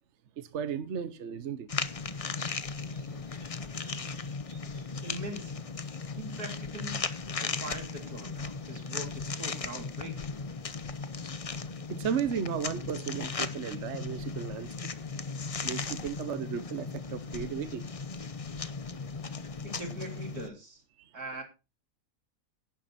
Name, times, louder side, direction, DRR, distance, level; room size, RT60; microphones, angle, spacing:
voice 1, 0.4-1.7 2.9-3.0 3.4-3.5 3.8-4.1 4.5-4.8 11.9-14.9 15.6-17.8, right 8 dB, 55° right, 1.1 m, -35 dB
sound 1, 1.7-20.5, left 4 dB, 35° left, 0.6 m, -37 dB
voice 2, 5.0-5.7 6.1-7.0 7.4-10.4 19.6-20.8 21.1-21.4, right 1 dB, 90° right, 3.8 m, -42 dB
11.5 x 10.0 x 4.2 m
omnidirectional pair, 1.6 m